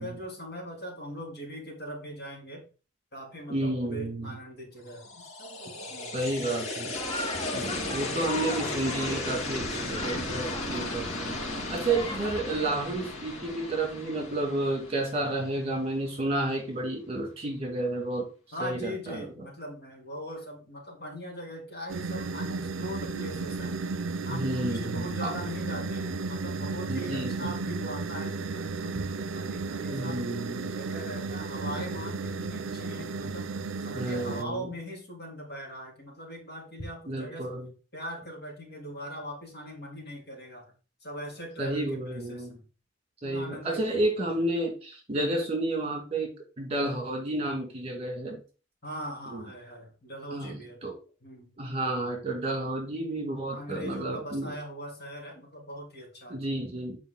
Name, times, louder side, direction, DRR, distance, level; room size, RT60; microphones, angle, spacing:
voice 1, 0.0-2.6 3.1-6.4 18.5-23.8 24.2-30.2 30.6-33.5 33.8-37.6 37.9-40.7 41.0-42.6 43.2-44.3 48.8-50.8 51.2-51.5 53.5-56.4, equal, 50° left, -2 dB, 3.2 m, -41 dB
voice 2, 3.5-4.3 6.1-7.0 7.5-11.4 11.7-18.3 18.6-19.3 24.3-25.3 26.9-27.5 29.9-30.8 33.9-34.7 37.1-37.7 41.6-42.5 43.2-48.4 49.3-49.4 50.3-51.0 51.6-54.5 56.3-57.0, right 2 dB, 30° right, 1 dB, 2.3 m, -31 dB
sound 1, 4.9-15.9, left 2 dB, 85° left, 2.2 m, -36 dB
sound 2, 7.0-12.4, left 2 dB, 25° left, 0.8 m, -38 dB
sound 3, 21.9-34.4, right 4 dB, 70° right, 0.6 m, -34 dB
9.2 x 4.9 x 3.9 m, 0.35 s
head